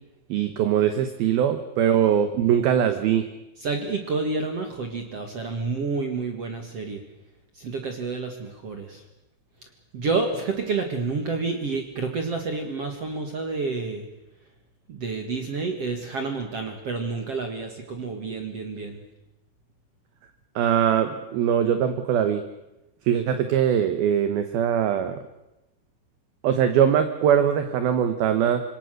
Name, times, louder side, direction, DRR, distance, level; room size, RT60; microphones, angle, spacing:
voice 1, 0.3-3.3 20.6-22.4 23.1-25.2 26.4-28.6, right 9 dB, 70° right, 9 dB, 2.6 m, -22 dB
voice 2, 3.6-7.0 7.6-9.0 9.9-14.1 14.9-19.0, right 4 dB, 50° right, 5 dB, 2.0 m, -29 dB
26.5 x 22.0 x 6.6 m, 0.93 s
omnidirectional pair, 5.4 m